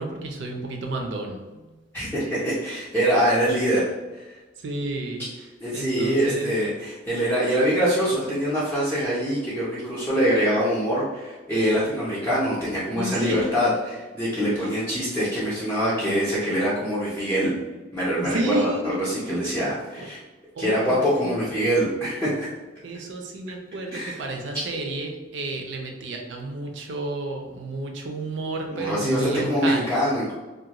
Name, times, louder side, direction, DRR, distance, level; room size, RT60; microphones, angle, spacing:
voice 1, 0.0-1.4 4.6-5.2 5.7-6.5 13.0-13.4 14.6-14.7 18.1-19.4 20.0-20.1 20.6-21.3 22.8-29.9, right 2 dB, 70° right, 2 dB, 0.5 m, -31 dB
voice 2, 1.9-3.9 4.1-4.3 5.6-17.5 17.9-20.2 20.6-22.5 23.9-24.2 24.5-24.6 28.7-30.3, equal, 10° left, -10 dB, 0.5 m, -24 dB
2.4 x 2.2 x 2.8 m, 1.2 s
head